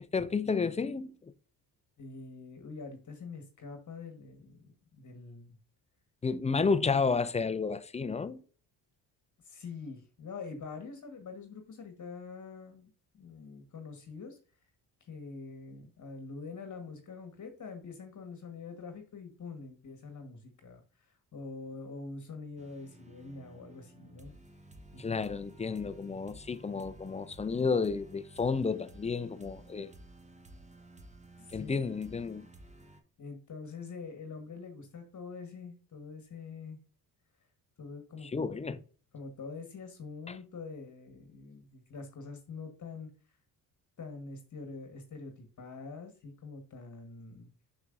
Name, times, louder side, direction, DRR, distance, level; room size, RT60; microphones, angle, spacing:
voice 1, 0.1-1.1 6.2-8.4 25.0-29.9 31.5-32.4 38.3-38.8 40.3-40.4, left 5 dB, 15° left, 0.4 m, -31 dB
voice 2, 2.0-5.6 9.4-12.9 13.1-14.4 15.0-24.3 24.9-25.2 31.4-31.9 33.2-36.8 37.8-38.8 39.1-43.1 44.0-47.5, left 4 dB, 40° left, 1.3 m, -45 dB
sound 1, 22.6-33.0, right 1 dB, 15° right, 0.9 m, -53 dB
6.5 x 6.0 x 2.5 m
supercardioid pair, 70°, 44 cm